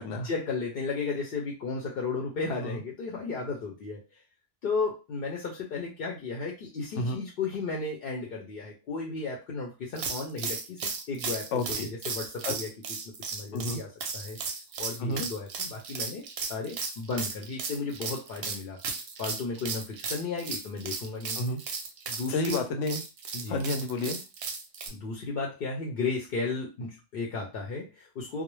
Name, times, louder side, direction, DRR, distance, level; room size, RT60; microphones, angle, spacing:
voice 1, 0.2-4.2 4.6-12.7 13.0-14.4 14.8-16.2 16.5-18.8 19.2-21.4 22.1-22.6 23.3-23.6 24.9-28.4, left 4 dB, 60° left, -1 dB, 0.7 m, -34 dB
sound 1, 10.0-24.9, right 5 dB, 65° right, 0.7 m, -35 dB
voice 2, 11.5-11.9 12.4-12.5 13.5-13.8 15.0-15.3 21.4-21.6 22.3-23.0 23.5-24.2, left 2 dB, 80° left, 5 dB, 0.9 m, -30 dB
2.4 x 2.0 x 3.0 m, 0.29 s
omnidirectional pair, 1.3 m